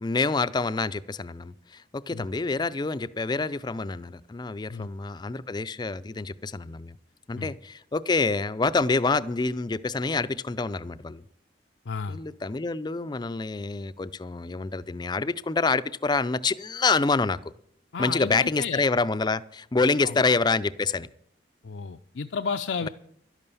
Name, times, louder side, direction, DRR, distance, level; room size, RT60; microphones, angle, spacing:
voice 1, 0.0-7.0 7.3-11.2 12.1-17.4 18.0-21.1, left 4 dB, 25° left, 14 dB, 0.4 m, -27 dB
voice 2, 11.9-12.2 17.9-18.8 20.0-20.1 21.6-22.9, left 5 dB, 80° left, 7 dB, 0.5 m, -32 dB
12.0 x 11.0 x 7.0 m, 0.69 s
head